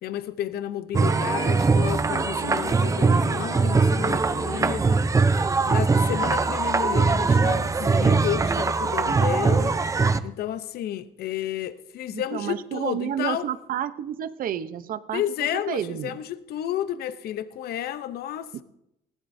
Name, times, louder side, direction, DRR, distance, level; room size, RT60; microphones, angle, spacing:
voice 1, 0.0-5.0 5.6-9.8 10.2-13.5 15.1-18.6, left 11 dB, 65° left, 0.7 m, -31 dB
sound 1, 0.9-10.2, right 4 dB, 20° right, 0.6 m, -22 dB
voice 2, 2.0-2.9 12.1-16.2 18.5-18.6, right 10 dB, 55° right, 0.8 m, -31 dB
20.0 x 15.5 x 2.7 m
cardioid pair, 110°, 17 cm